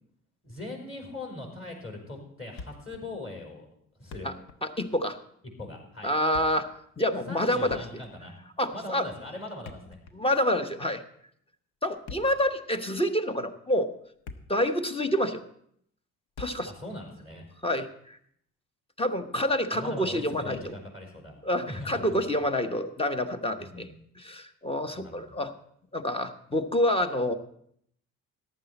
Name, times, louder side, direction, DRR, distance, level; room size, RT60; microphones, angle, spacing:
voice 1, 0.4-3.7 4.0-4.3 5.6-6.1 7.3-8.3 8.7-10.0 16.7-17.5 19.7-21.4 21.7-22.2 23.6-23.9 25.0-25.4, left 2 dB, 25° left, 0 dB, 4.7 m, -40 dB
Thump thud, 2.6-3.1 3.3-3.4 3.9-4.6 4.9-5.1 6.1-6.7 7.6-8.3 9.5-10.4 11.9-12.5 13.2-13.4 13.9-14.7 15.0-15.1 16.4-16.8, left 4 dB, 60° left, 1.2 m, -45 dB
voice 2, 4.6-5.2 6.0-6.7 7.0-7.8 8.6-9.1 10.1-11.0 11.8-13.9 14.5-15.4 16.4-16.7 17.6-18.2 19.0-20.8 21.4-23.9 24.2-25.5 25.9-27.3, left 1 dB, 10° left, 9 dB, 1.0 m, -27 dB
14.5 x 10.5 x 4.2 m, 0.69 s
hypercardioid pair, 55°, 46 cm